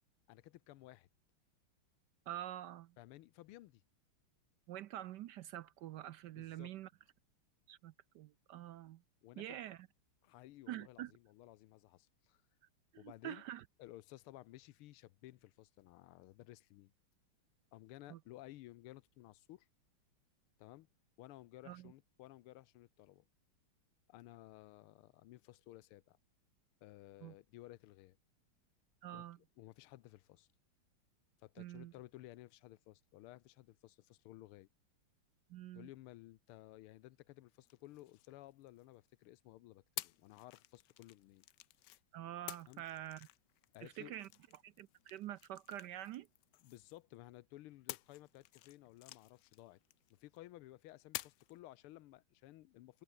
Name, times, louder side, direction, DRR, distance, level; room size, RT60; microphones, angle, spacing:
voice 1, 0.3-1.1 3.0-3.8 6.4-6.7 9.2-9.6 10.2-12.4 12.9-13.4 13.8-16.9 17.7-19.7 20.6-20.9 21.2-23.3 24.1-26.2 26.8-28.2 29.1-30.5 31.4-34.7 35.7-41.4 42.7-42.8 43.7-44.1 46.6-49.8 50.1-53.0, left 16 dB, 85° left, 1.6 m, -56 dB
voice 2, 2.3-2.9 4.7-6.9 7.7-9.0 9.4-9.9 10.7-11.1 12.9-13.6 18.1-18.2 21.7-21.9 27.2-27.3 29.0-29.4 31.6-31.9 35.5-35.9 42.1-43.3 43.8-44.3 44.6-46.3, right 13 dB, 75° right, 1.0 m, -46 dB
sound 1, 37.6-39.1 40.0-42.0 42.5-47.2 47.9-50.4 51.1-51.6, left 15 dB, 70° left, 1.1 m, -51 dB
omnidirectional pair, 2.4 m